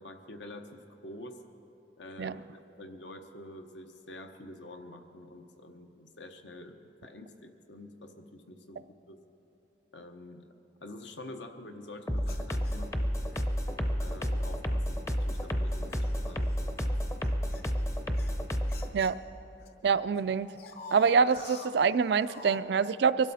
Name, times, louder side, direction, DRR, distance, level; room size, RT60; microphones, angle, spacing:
voice 1, 0.0-1.4 2.0-9.2 9.9-10.5 10.8-13.1 14.0-16.7, left 1 dB, 80° left, 6 dB, 1.0 m, -47 dB
sound 1, 12.1-18.9, equal, 15° left, 0.6 m, -30 dB
sound 2, 12.2-13.4 14.2-14.4 15.0-19.7 20.0-22.6, left 3 dB, 55° left, 1.0 m, -49 dB
voice 2, 19.8-20.5 20.9-23.3, right 5 dB, 70° right, 14 dB, 0.3 m, -25 dB
23.5 x 12.0 x 4.1 m, 3.0 s
head